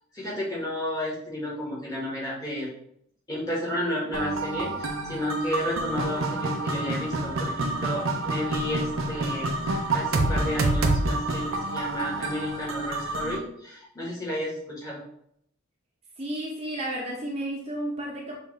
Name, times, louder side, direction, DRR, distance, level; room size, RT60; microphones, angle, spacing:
voice 1, 0.1-2.7 3.3-15.0, equal, 20° left, -5 dB, 1.5 m, -32 dB
sound 1, 4.1-13.4, right 2 dB, 80° right, 0.6 m, -28 dB
voice 2, 16.2-18.4, right 1 dB, 30° right, -3 dB, 0.7 m, -32 dB
6.5 x 2.5 x 3.1 m, 0.71 s
head